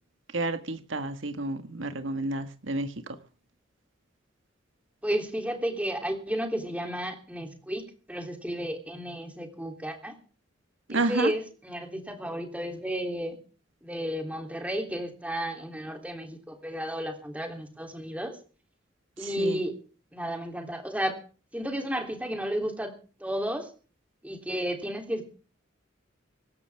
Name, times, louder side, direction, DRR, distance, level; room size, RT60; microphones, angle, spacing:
voice 1, 0.3-2.9 10.9-11.3 19.2-19.6, right 2 dB, 85° right, 1.8 m, -30 dB
voice 2, 5.0-7.8 8.1-10.1 10.9-13.4 13.8-18.4 19.2-19.7 20.1-21.1 21.5-22.9 23.2-23.7 24.2-25.2, equal, 5° right, 3.3 m, -32 dB
25.0 x 13.5 x 3.6 m
head